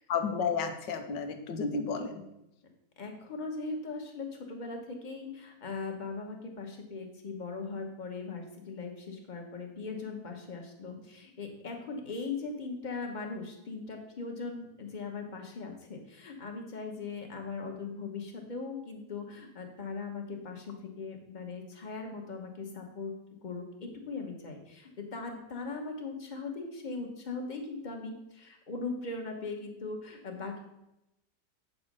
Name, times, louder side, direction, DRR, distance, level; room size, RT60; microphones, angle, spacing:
voice 1, 0.1-2.2, left 5 dB, 80° left, 7 dB, 1.6 m, -32 dB
voice 2, 3.0-23.1 23.4-30.7, left 4 dB, 30° left, 2 dB, 1.3 m, -39 dB
7.8 x 5.3 x 6.1 m, 0.88 s
omnidirectional pair, 1.9 m